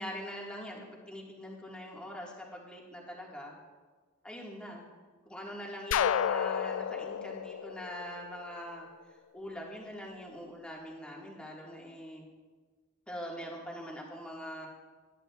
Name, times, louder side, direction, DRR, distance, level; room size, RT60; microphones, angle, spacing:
voice 1, 0.0-3.6 4.2-4.8 5.3-12.3 13.1-14.7, equal, 5° left, -3 dB, 1.8 m, -43 dB
sound 1, 5.9-8.7, left 8 dB, 85° left, 0.3 m, -31 dB
19.0 x 11.0 x 2.4 m, 1.4 s
head